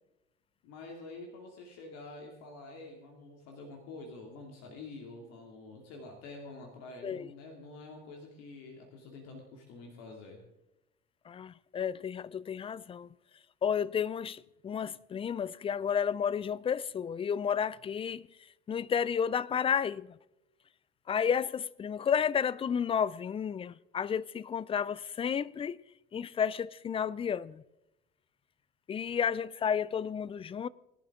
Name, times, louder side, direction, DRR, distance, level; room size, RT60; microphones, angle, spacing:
voice 1, 0.6-10.4, left 3 dB, 60° left, 2.6 m, -47 dB
voice 2, 11.3-13.1 13.6-18.3 18.7-20.2 21.1-25.8 26.1-27.6 28.9-30.7, left 7 dB, 20° left, 0.4 m, -32 dB
19.5 x 11.5 x 3.7 m
figure-of-eight pair, 65°, 29 cm